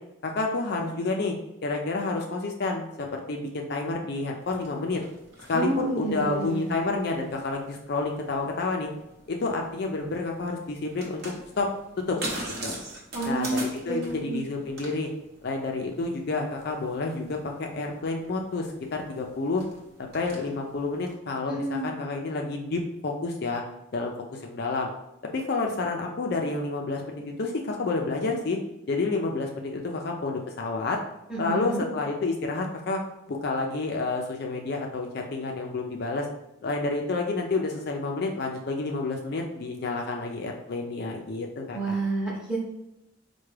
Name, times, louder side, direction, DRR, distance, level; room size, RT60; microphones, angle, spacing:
voice 1, 0.2-1.3 1.6-5.0 5.5-8.9 9.3-11.7 12.1-12.2 12.6-12.8 13.2-15.1 15.4-19.6 20.1-23.6 23.9-24.9 25.3-28.6 28.9-31.0 31.4-33.0 33.3-36.3 36.6-42.0, left 3 dB, 50° left, 2 dB, 0.4 m, -29 dB
sound 1, 4.4-21.1, right 1 dB, 50° right, 0.9 m, -43 dB
voice 2, 5.5-6.7 13.1-14.4 21.5-21.9 31.3-31.8 41.7-42.6, right 2 dB, 5° right, -4 dB, 0.8 m, -29 dB
4.5 x 2.2 x 3.2 m, 0.88 s
head